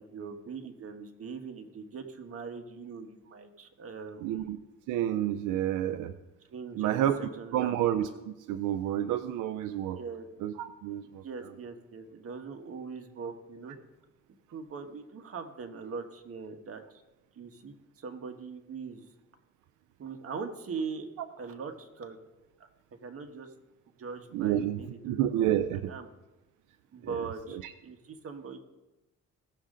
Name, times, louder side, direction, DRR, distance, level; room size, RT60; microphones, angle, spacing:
voice 1, 0.0-4.5 6.5-7.0 7.4-7.9 9.9-10.3 11.2-13.8 14.5-17.0 17.3-19.0 20.0-21.1 21.4-22.2 23.0-23.5 24.0-26.1 26.9-28.6, right 5 dB, 50° right, 5 dB, 1.4 m, -41 dB
voice 2, 4.2-4.6 4.9-6.1 6.8-7.2 7.5-10.0 10.4-11.2 24.3-25.9 27.6-27.7, right 11 dB, 90° right, 11 dB, 0.5 m, -29 dB
17.5 x 6.5 x 3.8 m, 1.0 s
cardioid pair, 90°, 30 cm